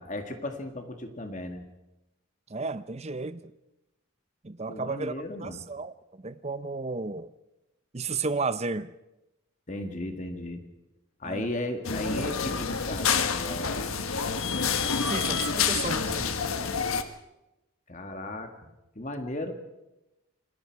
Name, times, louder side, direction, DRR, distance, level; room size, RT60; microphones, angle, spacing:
voice 1, 0.0-1.6 4.7-5.6 9.7-10.6 11.2-13.9 17.9-18.5 19.0-19.5, left 1 dB, 35° left, 5 dB, 2.0 m, -35 dB
voice 2, 2.5-3.5 4.4-5.1 5.4-7.3 7.9-8.9 11.2-11.4 15.0-16.3, right 4 dB, 30° right, 13 dB, 0.6 m, -33 dB
sound 1, 11.8-17.0, left 6 dB, 75° left, 1.3 m, -28 dB
27.0 x 20.0 x 4.8 m, 0.96 s
head